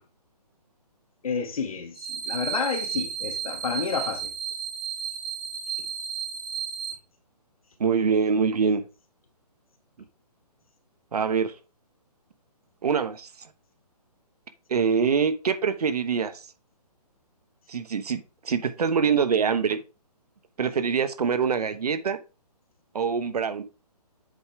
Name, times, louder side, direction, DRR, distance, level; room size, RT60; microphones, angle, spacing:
voice 1, 1.2-4.3, left 5 dB, 60° left, 1.8 m, -30 dB
sound 1, 1.9-6.9, right 7 dB, 35° right, 3.2 m, -33 dB
voice 2, 7.8-8.8 11.1-11.5 12.8-13.3 14.7-16.4 17.7-19.8 20.6-22.2 22.9-23.6, right 6 dB, 65° right, 1.1 m, -24 dB
8.0 x 5.0 x 3.4 m
hypercardioid pair, 165°, 21 cm